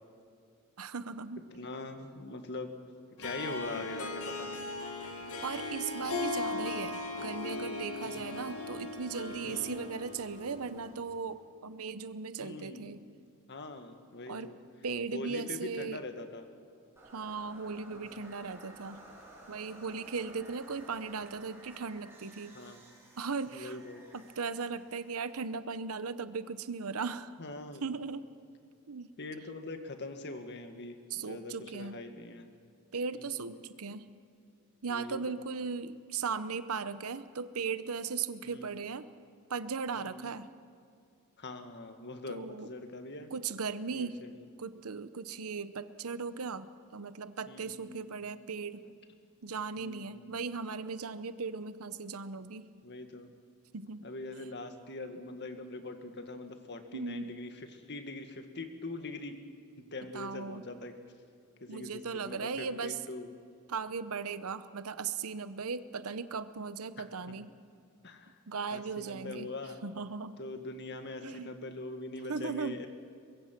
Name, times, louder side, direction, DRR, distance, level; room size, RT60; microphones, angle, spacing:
voice 1, 0.8-1.5 5.4-13.0 14.3-14.5 14.8-16.0 17.1-19.0 19.5-22.5 23.2-23.8 24.1-27.3 27.8-28.3 28.9-29.1 31.1-32.0 32.9-34.1 34.8-39.1 39.5-40.5 42.3-42.7 43.3-44.2 44.6-48.8 49.4-52.7 53.7-54.1 56.9-57.3 60.1-60.7 61.7-63.0 63.7-67.5 68.5-69.5 69.8-70.4 71.2-71.5 72.3-72.9, right 5 dB, 75° right, 13 dB, 0.8 m, -37 dB
voice 2, 1.5-2.7 3.2-4.7 8.0-8.4 9.4-9.8 12.4-12.9 13.5-14.6 15.1-16.4 17.9-18.1 22.5-22.8 23.5-24.0 27.4-28.0 29.2-32.5 33.1-33.5 34.9-35.4 38.5-38.7 39.9-40.3 41.4-43.3 43.9-44.3 47.5-48.0 49.8-50.2 52.8-53.3 54.0-59.4 59.9-60.9 61.6-63.3 67.0-67.1 68.0-68.3 68.7-69.8 70.4-72.9, left 2 dB, 50° left, 7 dB, 1.9 m, -42 dB
Harp, 3.2-10.9, left 2 dB, 75° left, 2.3 m, -38 dB
sound 1, 17.0-26.0, right 1 dB, 10° right, 7.9 m, -54 dB
23.5 x 21.5 x 6.0 m, 2.4 s
head